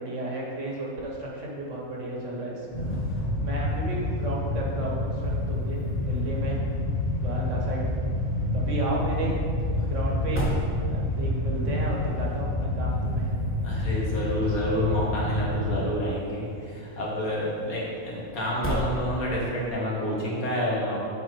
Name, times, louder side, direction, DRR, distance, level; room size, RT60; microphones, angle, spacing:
voice 1, 0.0-2.9 3.4-5.8 6.1-6.6 7.2-7.8 8.5-9.4 9.9-10.5 10.9-13.3, right 1 dB, 60° right, -3 dB, 1.6 m, -33 dB
sound 1, 1.6-19.7, right 1 dB, 10° left, 0.9 m, -40 dB
sound 2, 2.7-16.2 16.4-16.6 17.3-17.6 18.2-18.4 19.5-19.7, left 1 dB, 50° left, 1.6 m, -28 dB
voice 2, 13.6-21.0, left 1 dB, 85° left, -4 dB, 2.0 m, -29 dB
8.5 x 4.2 x 4.5 m, 2.4 s
omnidirectional pair, 1.5 m